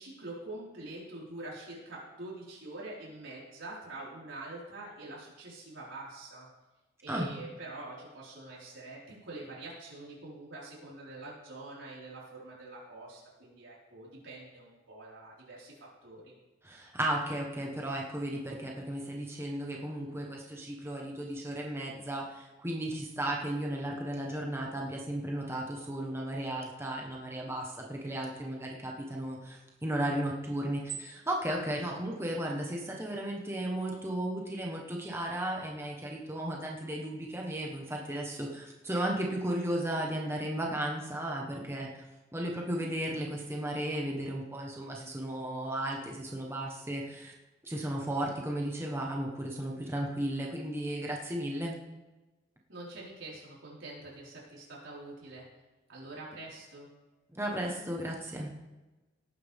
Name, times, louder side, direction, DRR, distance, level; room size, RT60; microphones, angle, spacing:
voice 1, 0.0-6.5 7.0-16.4 31.7-32.3 52.7-55.4 55.9-56.9, right 2 dB, 90° right, -6 dB, 4.9 m, -45 dB
voice 2, 16.6-42.1 42.3-47.3 47.6-51.8 57.3-58.5, right 1 dB, 15° right, -1 dB, 1.3 m, -35 dB
18.0 x 9.4 x 3.6 m, 1.1 s
head